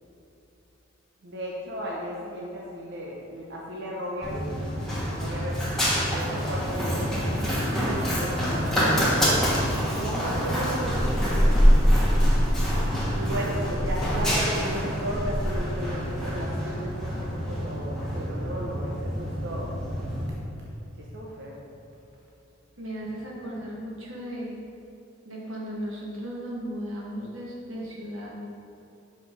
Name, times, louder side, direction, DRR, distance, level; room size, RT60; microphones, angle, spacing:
voice 1, 1.2-9.0 9.9-11.6 13.1-19.7 21.0-21.6, equal, 60° right, -4 dB, 0.8 m, -35 dB
Run, 4.2-20.3, equal, ahead, 1.5 m, -25 dB
voice 2, 22.8-24.5 25.2-28.3, equal, 90° right, -4 dB, 1.7 m, -36 dB
6.8 x 5.0 x 5.3 m, 2.9 s
head